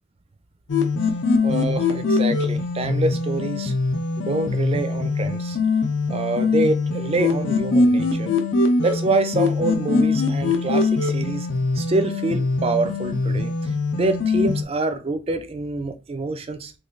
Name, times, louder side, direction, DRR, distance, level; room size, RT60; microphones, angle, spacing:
sound 1, 0.7-14.6, left 3 dB, 65° left, 0.6 m, -22 dB
voice 1, 1.4-3.7 4.2-5.6 6.1-8.3 8.8-11.5 11.7-16.7, right 2 dB, 30° right, 0.4 m, -26 dB
3.1 x 2.2 x 3.7 m
head